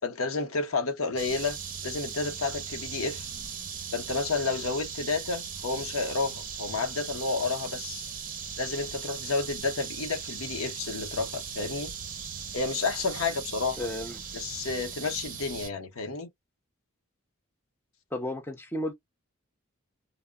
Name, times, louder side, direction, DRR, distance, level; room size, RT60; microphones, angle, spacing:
voice 1, 0.0-1.6 1.8-3.3 3.9-8.1 8.6-11.9 12.5-13.9 14.3-16.3, left 4 dB, 85° left, 0.8 m, -31 dB
sound 1, 1.2-15.7, right 7 dB, 40° right, 0.6 m, -38 dB
voice 2, 13.8-14.1 18.1-18.9, left 1 dB, 10° left, 0.6 m, -33 dB
2.2 x 2.1 x 3.5 m
head